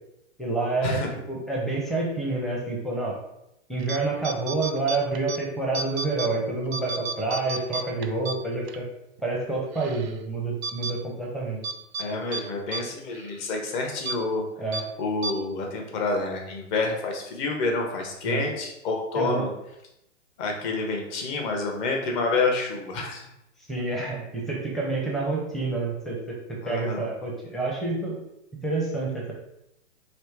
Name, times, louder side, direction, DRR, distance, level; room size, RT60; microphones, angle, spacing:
voice 1, 0.4-1.0 1.3-3.2 3.7-8.8 9.2-11.6 14.6-14.8 18.2-18.5 19.1-19.5 23.7-28.2 28.6-29.3, right 3 dB, ahead, -2 dB, 0.6 m, -28 dB
sound 1, 3.8-4.0 4.2-5.4 5.7-6.3 6.7-8.8 9.2-9.3 9.7-10.1 10.6-10.9 11.6-12.1 12.3-12.4 12.7-12.8 13.1-13.3 14.0-14.2 14.7-14.8 15.2-15.3, right 4 dB, 55° right, 0.5 m, -32 dB
voice 2, 12.0-14.4 15.0-19.5 20.4-23.2 26.6-27.0, left 3 dB, 35° left, 1 dB, 1.1 m, -28 dB
3.2 x 3.0 x 4.5 m, 0.84 s
hypercardioid pair, 125°, 39 cm